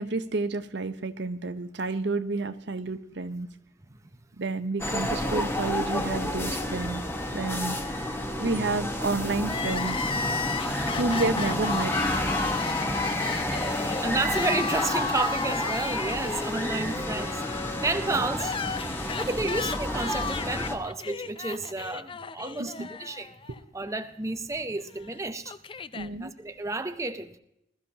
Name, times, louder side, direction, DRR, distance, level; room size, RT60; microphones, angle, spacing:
voice 1, 0.0-3.5 4.4-7.0 7.3-7.8 8.4-10.0 10.9-12.0 22.6-22.9 23.5-23.6 25.9-26.3, right 3 dB, 70° right, 0.9 m, -30 dB
sound 1, 4.8-20.8, left 1 dB, 15° left, 1.3 m, -30 dB
Crying sobbing, 9.4-23.6 23.9-24.0 25.0-26.1, left 5 dB, 30° left, 0.4 m, -34 dB
voice 2, 13.7-23.3 23.7-25.5 26.2-27.4, right 2 dB, 15° right, 0.6 m, -31 dB
21.0 x 13.5 x 2.9 m
head